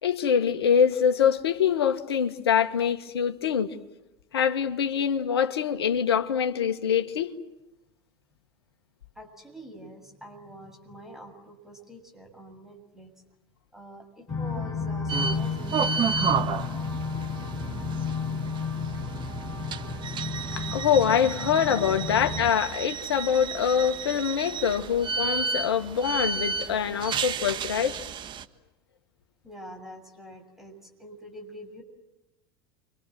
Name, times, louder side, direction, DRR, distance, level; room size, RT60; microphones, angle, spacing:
voice 1, 0.0-3.7 4.3-7.3 20.5-28.0, left 8 dB, 75° left, 1.6 m, -24 dB
voice 2, 9.2-13.1 13.7-16.5 29.4-31.8, right 1 dB, 5° right, 6.9 m, -46 dB
sound 1, 14.3-22.5, left 4 dB, 20° left, 6.0 m, -32 dB
sound 2, 15.1-28.4, right 6 dB, 35° right, 1.5 m, -32 dB
29.5 x 25.0 x 7.7 m
figure-of-eight pair, 80°, 13 cm